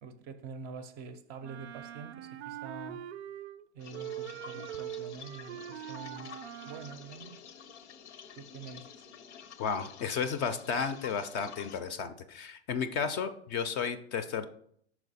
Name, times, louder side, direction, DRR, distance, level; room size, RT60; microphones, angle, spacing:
voice 1, 0.0-3.0 3.7-6.3 6.6-7.4 8.4-9.0, right 5 dB, 30° right, 0.5 m, -46 dB
Wind instrument woodwind instrument, 1.4-3.6 3.9-7.0, right 11 dB, 80° right, 0.5 m, -42 dB
sound 1, 3.8-11.8, left 7 dB, 85° left, 0.7 m, -50 dB
voice 2, 9.6-14.5, left 6 dB, 30° left, 0.4 m, -33 dB
5.8 x 4.4 x 4.1 m
hypercardioid pair, 120°, 33 cm